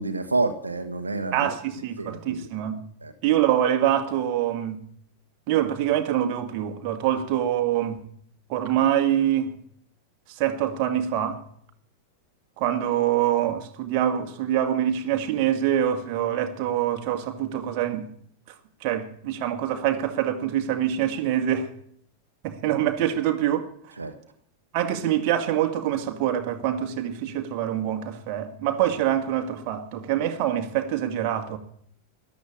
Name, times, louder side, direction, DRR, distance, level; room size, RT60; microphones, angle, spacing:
voice 1, 0.0-1.5 2.0-2.5 3.0-3.1 24.0-24.1, right 3 dB, 80° right, 1.5 m, -28 dB
voice 2, 1.3-2.9 3.2-4.9 5.5-8.0 8.5-9.5 10.3-11.4 12.6-18.1 18.8-21.7 22.4-23.9 24.7-31.6, right 11 dB, 45° right, 2.1 m, -25 dB
13.5 x 11.5 x 8.7 m
figure-of-eight pair, 90°, 0 cm